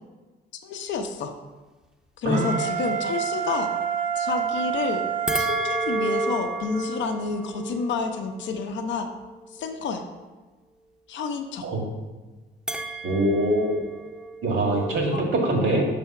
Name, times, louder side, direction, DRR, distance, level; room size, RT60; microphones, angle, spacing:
voice 1, 0.6-1.3 2.2-3.7 4.2-5.0 5.3-9.1 9.5-10.0 11.1-11.6 15.1-15.3, left 5 dB, 65° left, 5 dB, 0.6 m, -29 dB
Wind instrument woodwind instrument, 2.3-7.1, right 7 dB, 40° right, 0.8 m, -29 dB
sound 1, 5.3-9.7 12.7-15.2, right 2 dB, 5° right, 0.6 m, -32 dB
voice 2, 13.0-13.7 14.4-15.9, right 1 dB, 75° right, 0 dB, 1.8 m, -23 dB
5.6 x 3.4 x 5.7 m, 1.3 s
cardioid pair, 90°, 20 cm